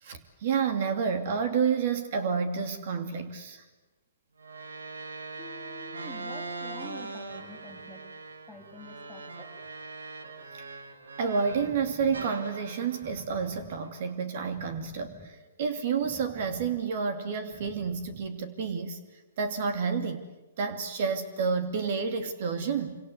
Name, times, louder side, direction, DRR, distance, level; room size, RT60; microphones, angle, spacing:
voice 1, 0.0-3.6 10.6-10.7 11.2-19.0 19.4-20.3 20.6-23.0, right 5 dB, 55° right, 8 dB, 2.8 m, -30 dB
sound 1, 4.4-11.8 12.1-14.5, right 3 dB, 85° right, 2.6 m, -42 dB
voice 2, 5.4-8.0 8.5-9.5, left 3 dB, 10° left, 5 dB, 3.9 m, -47 dB
sound 2, 11.5-18.3, right 2 dB, 10° right, 6.5 m, -52 dB
26.5 x 25.5 x 8.3 m, 1.1 s
hypercardioid pair, 130°, 0 cm